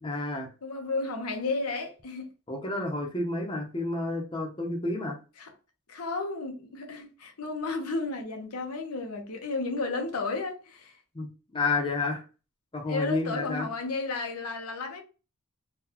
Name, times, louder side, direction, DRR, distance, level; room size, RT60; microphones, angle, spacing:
voice 1, 0.0-0.5 2.5-5.2 11.1-11.3 11.5-12.2 12.7-13.7, left 3 dB, 25° left, 0.7 m, -30 dB
voice 2, 0.6-2.3 5.4-5.5 5.9-11.0 12.9-15.0, left 3 dB, 85° left, 0.8 m, -33 dB
3.8 x 2.3 x 2.9 m
head